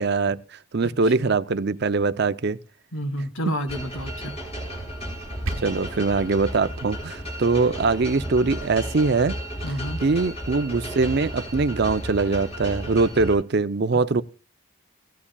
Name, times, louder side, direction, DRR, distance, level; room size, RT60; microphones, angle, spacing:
voice 1, 0.0-2.6 5.6-9.4 10.0-14.2, right 4 dB, 50° right, 0.5 m, -22 dB
voice 2, 0.8-1.3 2.9-4.3 9.6-10.0, equal, 75° left, 1.7 m, -30 dB
sound 1, 3.7-13.3, equal, 30° left, 5.5 m, -34 dB
sound 2, 5.0-6.0, right 2 dB, 75° right, 1.1 m, -34 dB
17.0 x 9.8 x 2.3 m
head